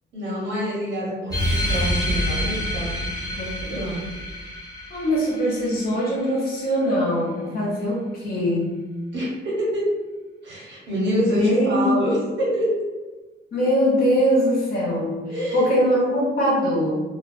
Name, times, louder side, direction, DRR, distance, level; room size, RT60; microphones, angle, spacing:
voice 1, 0.1-3.1 3.7-4.1 9.1-9.9 10.4-12.7 15.3-15.8, equal, 65° right, -6 dB, 1.1 m, -26 dB
sound 1, 1.3-6.3, left 1 dB, 20° left, 0.7 m, -27 dB
voice 2, 3.3-3.7 4.9-8.8 11.3-11.9 13.5-17.0, equal, 50° left, -5 dB, 1.0 m, -22 dB
2.3 x 2.1 x 2.6 m, 1.3 s
cardioid pair, 90°, 20 cm